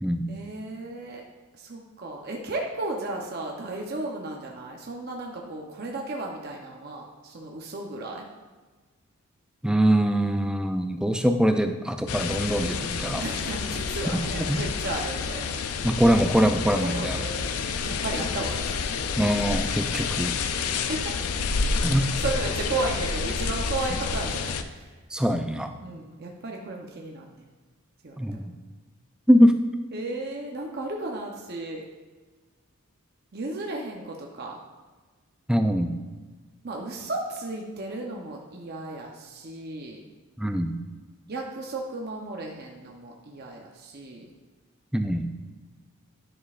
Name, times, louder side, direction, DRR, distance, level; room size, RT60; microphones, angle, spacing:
voice 1, 0.3-1.2 1.5-8.2 13.2-15.5 16.7-18.7 20.4-21.1 21.9-24.9 25.8-27.4 28.0-28.4 29.9-31.8 33.3-34.6 36.6-40.0 41.3-44.3, right 2 dB, 45° right, 0 dB, 0.7 m, -34 dB
voice 2, 9.6-13.2 14.1-14.2 14.5-14.6 15.8-17.2 19.2-20.3 21.8-22.1 25.1-25.8 28.2-28.4 29.3-29.7 35.5-35.9 40.4-40.7 44.9-45.3, equal, 5° right, 7 dB, 0.3 m, -23 dB
sound 1, 12.1-24.6, left 5 dB, 90° left, 0.5 m, -29 dB
9.9 x 6.2 x 2.4 m, 1.3 s
head